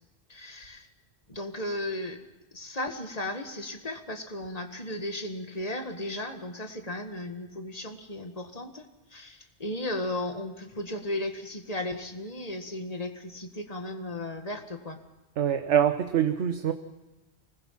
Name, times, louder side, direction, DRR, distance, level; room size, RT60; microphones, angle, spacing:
voice 1, 0.3-0.9 1.3-2.2 2.5-8.9 9.1-15.0, left 1 dB, 35° left, 6 dB, 1.8 m, -35 dB
voice 2, 15.4-16.7, right 9 dB, 90° right, 8 dB, 1.2 m, -24 dB
25.0 x 19.5 x 5.8 m, 1.1 s
omnidirectional pair, 1.1 m